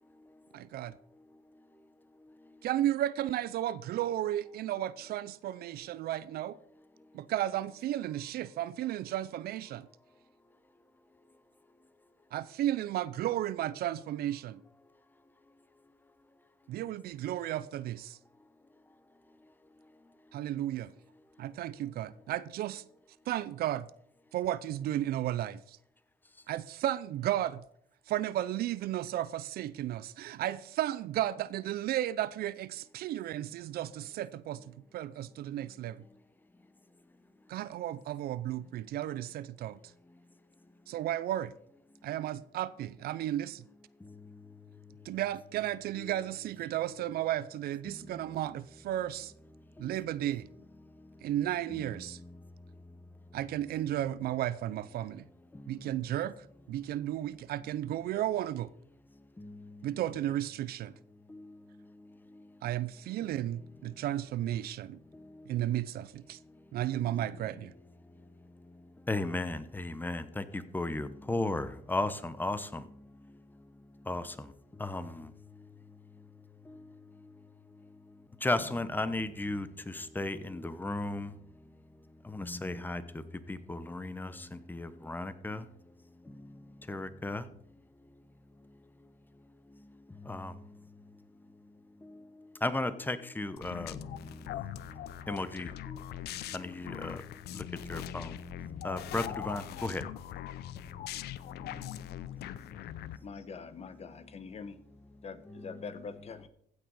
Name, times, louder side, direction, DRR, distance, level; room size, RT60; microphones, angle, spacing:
voice 1, 0.5-0.9 2.6-6.6 7.1-9.9 12.3-14.6 16.7-18.2 20.3-20.9 21.4-22.8 23.3-23.9 24.3-25.8 26.5-27.6 28.1-36.0 37.5-39.8 40.9-41.5 42.0-43.6 45.0-49.3 49.8-50.5 51.2-52.2 53.3-55.2 55.7-56.3 56.7-58.7 59.8-60.9 62.6-65.0 65.5-66.4 66.7-67.7, right 13 dB, 65° right, 0.6 m, -34 dB
voice 2, 69.1-70.4 70.7-72.8 74.1-74.3 74.8-75.3 78.4-81.3 82.3-83.0 83.5-85.6 86.9-87.4 90.2-90.5 92.6-94.0 95.3-96.0 96.5-97.2 97.5-98.3 98.8-100.0 105.5-105.7, left 2 dB, 10° left, 0.9 m, -35 dB
sound 1, 93.6-103.2, left 13 dB, 70° left, 0.7 m, -42 dB
voice 3, 103.2-104.8 105.2-106.5, left 5 dB, 40° left, 1.1 m, -44 dB
15.5 x 6.1 x 5.5 m
cardioid pair, 110°, 17 cm